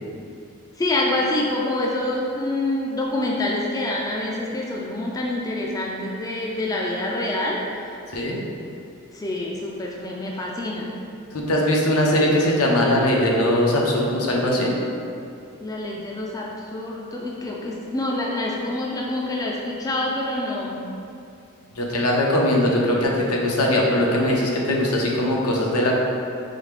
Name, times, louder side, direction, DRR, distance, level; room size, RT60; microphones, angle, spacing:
voice 1, 0.8-7.8 9.1-10.9 15.6-20.9, left 1 dB, 15° left, -2 dB, 0.3 m, -26 dB
voice 2, 11.3-14.7 21.8-25.9, left 1 dB, 80° left, -2 dB, 0.7 m, -20 dB
4.0 x 3.2 x 3.3 m, 2.5 s
head